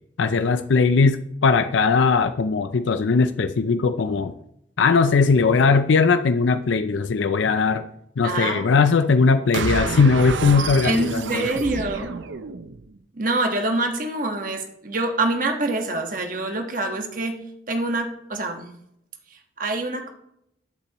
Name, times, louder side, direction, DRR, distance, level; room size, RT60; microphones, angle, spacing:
voice 1, 0.2-4.3 4.8-7.8 8.2-11.5, left 4 dB, 80° left, 10 dB, 0.5 m, -19 dB
voice 2, 8.2-8.8 10.8-12.2 13.1-18.7 19.3-20.1, right 2 dB, 45° right, 4 dB, 1.3 m, -26 dB
sound 1, 9.5-12.9, right 4 dB, 80° right, 0.6 m, -29 dB
12.5 x 8.5 x 3.0 m, 0.75 s
head